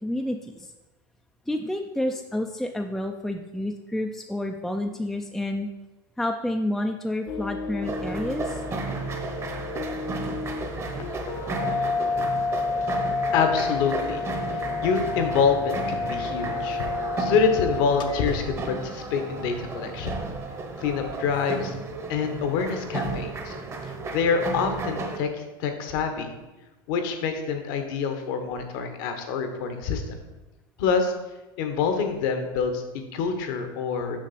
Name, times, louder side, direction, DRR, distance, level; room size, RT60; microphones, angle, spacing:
voice 1, 0.0-0.7 1.5-5.7 6.2-8.6, left 1 dB, ahead, 3 dB, 0.4 m, -29 dB
sound 1, 7.3-18.3, left 4 dB, 40° left, 0.6 m, -30 dB
sound 2, 7.8-25.2, right 3 dB, 25° right, 1.0 m, -34 dB
voice 2, 13.3-14.2 14.8-16.8 17.2-20.2 20.8-21.7 22.1-23.5 24.1-25.3 25.6-26.3 26.9-30.0 30.8-31.1 31.6-34.2, left 6 dB, 70° left, 6 dB, 1.1 m, -26 dB
6.2 x 5.3 x 4.2 m, 1.1 s
supercardioid pair, 110°, 12 cm